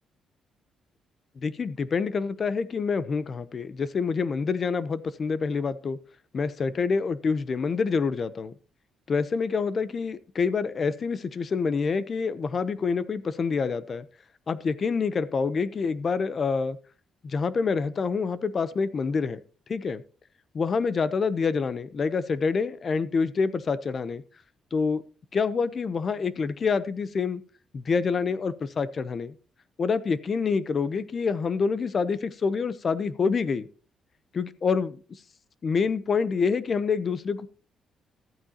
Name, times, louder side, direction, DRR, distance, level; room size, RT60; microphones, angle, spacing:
voice 1, 1.4-6.0 6.3-8.5 9.1-14.1 14.5-16.8 17.2-19.4 19.7-20.0 20.5-24.2 24.7-25.0 25.3-27.4 27.7-29.3 29.8-33.7 34.3-35.0 35.6-37.5, left 5 dB, 45° left, 0.8 m, -27 dB
14.0 x 8.8 x 2.9 m
cardioid pair, 90°, 0 cm